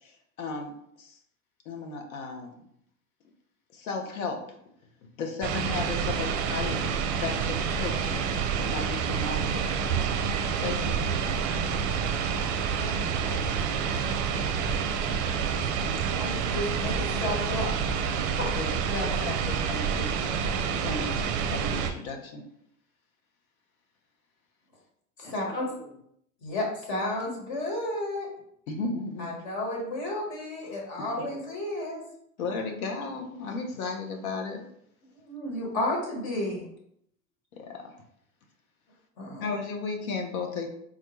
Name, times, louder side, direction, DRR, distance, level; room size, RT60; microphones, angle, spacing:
voice 1, 0.0-1.2 1.7-2.6 3.7-4.4 5.0-6.9 7.2-8.3 8.6-9.8 10.5-11.5 18.5-19.1 19.5-20.1 20.8-21.2 21.5-22.4 28.7-29.3 31.1-31.2 32.4-34.6 37.5-37.9 39.4-40.7, left 4 dB, 85° left, 4 dB, 0.8 m, -35 dB
sound 1, 5.4-21.9, right 6 dB, 45° right, 0.4 m, -28 dB
voice 2, 12.5-13.5 15.0-15.5 19.0-19.3 25.2-26.0, left 2 dB, 10° left, 3 dB, 0.5 m, -45 dB
voice 3, 16.1-17.7 18.4-18.5 25.2-25.6 26.4-28.3 29.2-32.0 35.1-36.6 39.2-39.5, left 1 dB, 60° left, -1 dB, 1.4 m, -32 dB
3.7 x 2.2 x 3.0 m, 0.72 s
hypercardioid pair, 95°, 41 cm